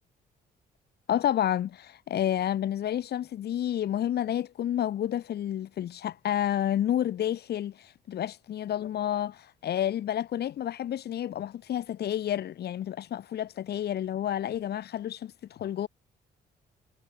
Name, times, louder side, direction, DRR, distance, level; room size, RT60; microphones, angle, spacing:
voice 1, 1.1-15.9, left 11 dB, 70° left, 3.8 m, -30 dB
cardioid pair, 80°, 18 cm